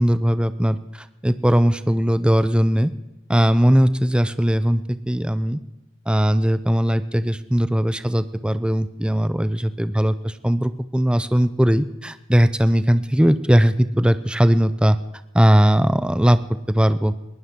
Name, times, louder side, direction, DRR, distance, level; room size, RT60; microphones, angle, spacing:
voice 1, 0.0-2.9 3.3-5.6 6.1-15.0 15.3-16.4 16.7-17.1, equal, 5° right, 12 dB, 0.5 m, -19 dB
20.5 x 19.0 x 3.7 m, 0.97 s
head